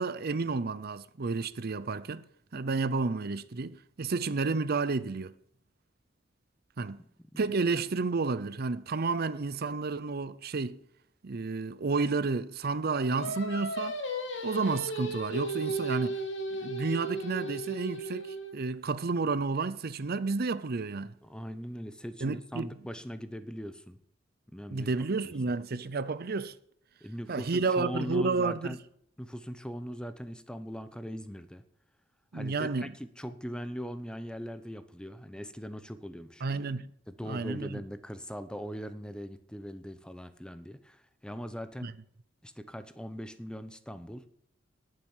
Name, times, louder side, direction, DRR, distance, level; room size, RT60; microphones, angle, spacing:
voice 1, 0.0-2.2 2.5-5.3 6.8-7.0 7.4-10.8 11.2-14.0 14.4-16.2 16.5-21.2 22.2-22.7 24.7-26.5 27.3-28.8 32.3-32.9 36.4-36.9 37.2-37.8 41.8-41.9, right 4 dB, 55° right, 0.7 m, -31 dB
voice 2, 7.0-7.5 21.2-24.0 24.5-24.9 25.2-25.3 27.0-28.8 29.2-31.6 32.3-36.5 37.1-41.9 42.4-44.2, equal, 5° left, 0.8 m, -40 dB
Singing, 13.1-18.5, right 2 dB, 75° left, 3.0 m, -35 dB
18.5 x 7.8 x 7.3 m
head